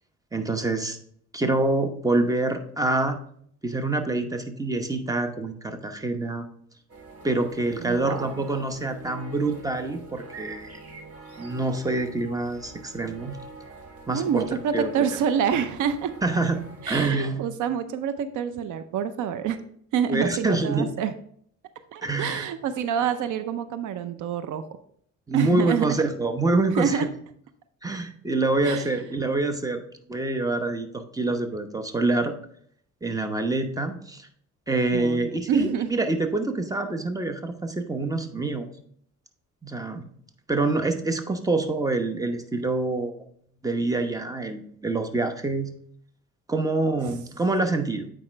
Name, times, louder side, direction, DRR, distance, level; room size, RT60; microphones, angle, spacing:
voice 1, 0.3-1.0 1.3-3.2 3.6-6.4 7.2-10.8 11.4-13.4 14.1-14.4 14.7-14.9 16.2-17.4 20.1-20.9 22.0-22.5 25.3-27.1 27.8-29.8 30.1-32.3 33.0-34.3 34.7-38.7 39.6-40.1 40.5-43.1 43.6-45.7 46.5-48.1, right 2 dB, 10° right, 6 dB, 1.0 m, -26 dB
sound 1, 6.9-17.0, right 3 dB, 50° right, 1.5 m, -44 dB
voice 2, 7.8-8.4 14.1-16.1 16.8-19.6 19.9-21.1 21.9-24.6 25.3-26.0 26.8-27.1 28.6-28.9 34.9-35.9 47.1-47.2, right 7 dB, 80° right, 11 dB, 0.6 m, -27 dB
8.6 x 5.0 x 3.3 m, 0.63 s
cardioid pair, 90°, 30 cm